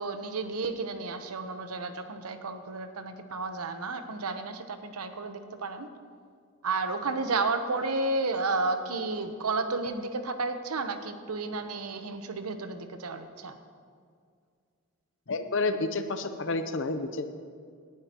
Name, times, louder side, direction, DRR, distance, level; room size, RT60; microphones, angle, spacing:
voice 1, 0.0-5.9 6.6-13.6, right 3 dB, 85° right, 8 dB, 0.9 m, -32 dB
voice 2, 15.3-17.3, left 3 dB, 55° left, 9 dB, 0.7 m, -30 dB
18.0 x 10.5 x 3.0 m, 2.1 s
head